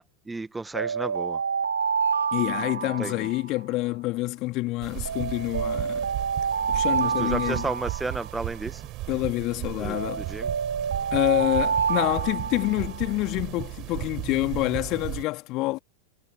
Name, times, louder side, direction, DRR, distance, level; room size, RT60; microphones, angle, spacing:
voice 1, 0.0-1.4 3.0-3.3 7.0-8.8 9.8-10.5, right 3 dB, 10° right, 1.4 m, -33 dB
sound 1, 0.7-3.9 5.1-8.8 9.9-13.2, right 6 dB, 70° right, 3.8 m, -28 dB
voice 2, 2.3-6.1 6.7-7.7 9.1-10.3 11.1-15.8, left 20 dB, 40° left, 2.6 m, -27 dB
sound 2, 4.8-15.2, right 18 dB, 40° right, 7.4 m, -36 dB
figure-of-eight pair, 90°, 0 cm